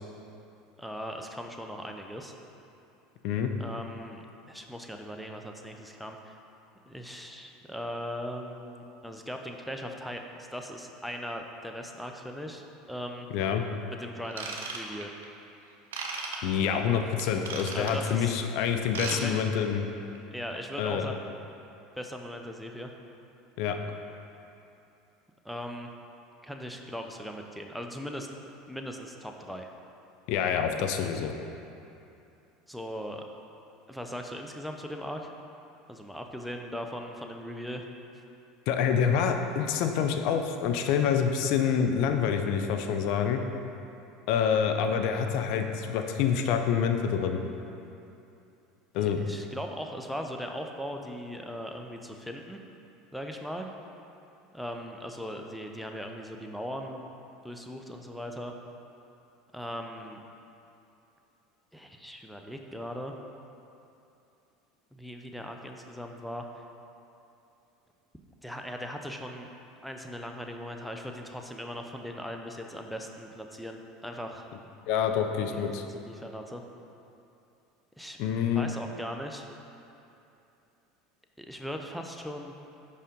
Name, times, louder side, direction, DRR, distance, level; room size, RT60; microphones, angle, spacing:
voice 1, 0.8-2.3 3.6-6.3 6.9-13.3 14.0-15.1 17.7-18.4 19.1-19.4 20.3-21.1 22.0-22.9 25.4-25.9 26.4-28.3 28.7-29.7 32.7-33.2 33.9-35.3 35.9-37.8 49.0-52.6 53.1-53.7 54.5-57.1 57.4-58.5 59.5-60.2 61.7-63.1 64.9-66.5 68.4-69.5 69.8-74.5 75.4-76.6 78.0-78.2 78.5-79.5 81.4-82.5, equal, ahead, 2 dB, 0.6 m, -39 dB
Ratchet pawl / Tools, 14.3-15.2 15.9-16.4 17.2-18.1 18.8-19.2 19.4-19.6 20.1-20.2, right 4 dB, 80° right, 0.8 m, -36 dB
voice 2, 16.4-19.9 20.8-21.1 23.6-23.8 30.3-31.3 38.7-43.4 44.3-47.4 48.9-49.2 74.9-75.8 78.2-78.7, left 7 dB, 65° left, 6 dB, 0.5 m, -27 dB
5.4 x 4.9 x 5.3 m, 2.8 s
hypercardioid pair, 85°, 0 cm